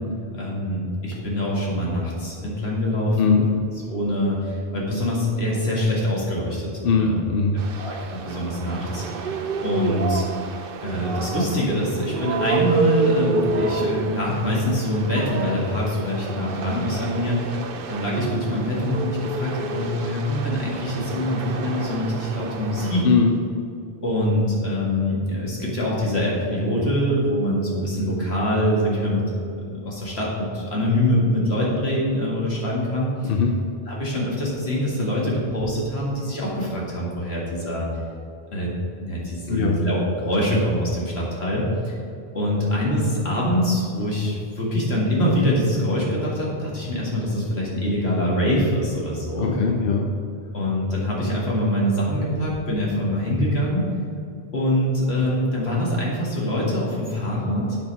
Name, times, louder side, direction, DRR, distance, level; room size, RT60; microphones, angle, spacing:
voice 1, 0.3-3.5 3.9-6.7 7.0-7.2 7.8-10.2 10.8-23.1 24.0-33.3 33.9-37.9 38.5-38.7 39.0-41.9 42.3-49.6 50.5-53.8 54.5-57.8, left 1 dB, 85° left, -4 dB, 2.3 m, -24 dB
voice 2, 3.1-3.5 6.8-7.7 23.0-23.4 33.2-33.6 39.5-39.8 49.3-50.1, left 4 dB, 65° left, 3 dB, 0.8 m, -21 dB
sound 1, 7.6-23.0, right 4 dB, 65° right, 0.8 m, -29 dB
8.4 x 5.5 x 5.4 m, 2.4 s
omnidirectional pair, 1.0 m